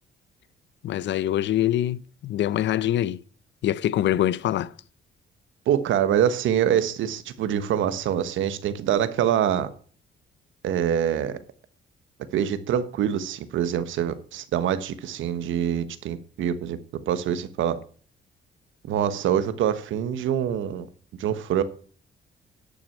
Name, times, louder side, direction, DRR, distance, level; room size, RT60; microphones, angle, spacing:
voice 1, 0.8-3.2 3.6-4.7, left 12 dB, 65° left, 0.6 m, -24 dB
voice 2, 5.7-9.7 10.6-11.4 12.3-16.8 17.1-17.8 18.9-20.9 21.2-21.6, right 9 dB, 80° right, 1.2 m, -25 dB
12.0 x 6.2 x 7.3 m
cardioid pair, 90°, 20 cm